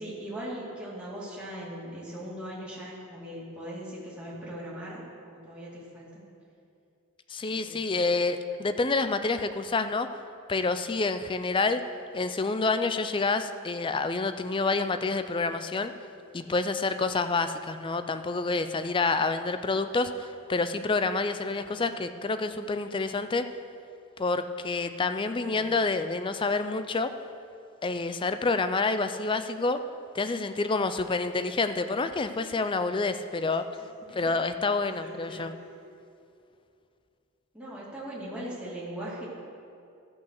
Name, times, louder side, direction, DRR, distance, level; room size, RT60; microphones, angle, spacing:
voice 1, 0.0-6.2 7.4-8.0 21.5-21.8 22.0-22.1 25.2-25.6 34.1-34.3 35.0-35.5 37.5-39.3, equal, 5° right, -8 dB, 2.3 m, -40 dB
voice 2, 7.3-10.1 10.5-11.8 12.1-15.9 16.3-23.5 24.2-27.1 27.8-29.8 30.1-33.7 34.1-35.5, left 3 dB, 25° left, 10 dB, 0.4 m, -28 dB
13.5 x 5.7 x 6.5 m, 2.5 s
head